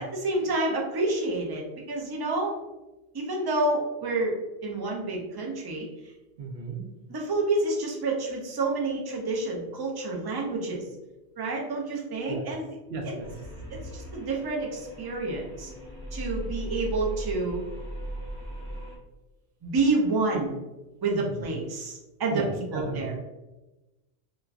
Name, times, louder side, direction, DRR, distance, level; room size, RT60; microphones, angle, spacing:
voice 1, 0.0-2.6 3.1-4.3 4.6-5.9 7.1-10.8 11.4-12.7 13.7-15.7 16.1-17.6 19.6-20.6 21.0-23.1, right 2 dB, 35° right, -1 dB, 0.3 m, -28 dB
voice 2, 6.4-6.9 12.3-12.4 12.9-13.3 21.1-21.5 22.3-23.1, right 3 dB, 70° right, 1 dB, 0.8 m, -34 dB
sound 1, 13.2-19.0, right 1 dB, 25° left, 0.7 m, -38 dB
3.0 x 2.3 x 2.4 m, 1.0 s
omnidirectional pair, 1.1 m